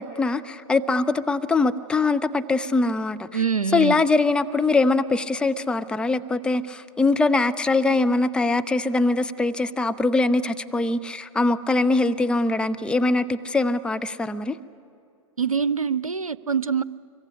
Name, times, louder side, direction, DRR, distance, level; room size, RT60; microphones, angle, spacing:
voice 1, 0.0-3.3 3.7-14.6, left 3 dB, 5° left, 9 dB, 0.7 m, -22 dB
voice 2, 3.3-4.0 15.4-16.8, right 6 dB, 85° right, 18 dB, 0.7 m, -24 dB
25.5 x 23.0 x 9.9 m, 2.5 s
figure-of-eight pair, 105°, 17 cm